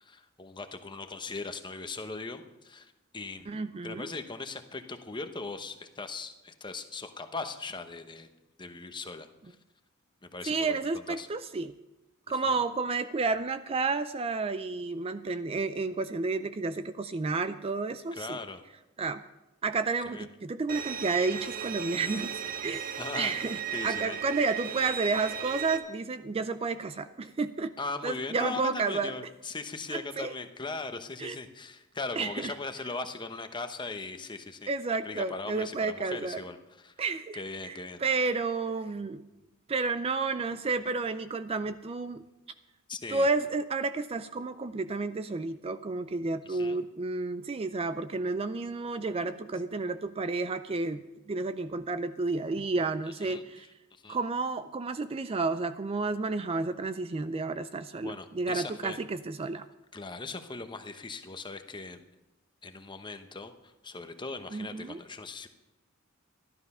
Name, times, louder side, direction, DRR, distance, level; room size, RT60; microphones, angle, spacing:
voice 1, 0.0-8.3 8.6-9.6 10.2-10.8 11.1-11.3 12.4-12.6 18.1-18.6 20.0-20.3 23.0-23.3 23.7-24.2 27.8-34.7 35.0-36.9 37.3-38.0 42.9-43.3 46.4-46.8 53.2-53.4 53.9-54.2 58.0-59.0 59.9-62.0 62.6-65.5, left 3 dB, 20° left, 8 dB, 0.9 m, -39 dB
voice 2, 3.5-4.1 10.5-11.7 12.3-18.4 19.0-19.2 19.6-27.7 28.0-29.1 29.9-30.3 31.2-31.4 32.2-32.5 34.7-36.4 37.0-39.2 39.7-42.2 43.1-53.7 54.1-59.7 64.5-65.0, right 3 dB, 30° right, 11 dB, 0.4 m, -31 dB
Bowed string instrument, 20.7-25.8, right 8 dB, 45° right, 0.8 m, -36 dB
13.5 x 12.0 x 5.5 m, 0.98 s
head